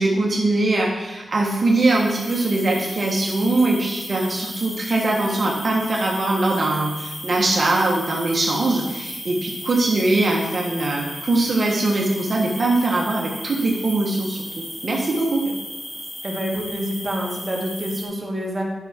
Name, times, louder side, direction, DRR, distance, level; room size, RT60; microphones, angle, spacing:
voice 1, 0.0-14.4 14.8-15.4, right 2 dB, 50° right, -2 dB, 1.3 m, -21 dB
sound 1, 1.5-18.1, equal, 20° left, 2.8 m, -35 dB
voice 2, 16.2-18.6, equal, 20° right, -2 dB, 2.0 m, -27 dB
8.9 x 5.8 x 4.4 m, 1.2 s
cardioid pair, 80°, 0 cm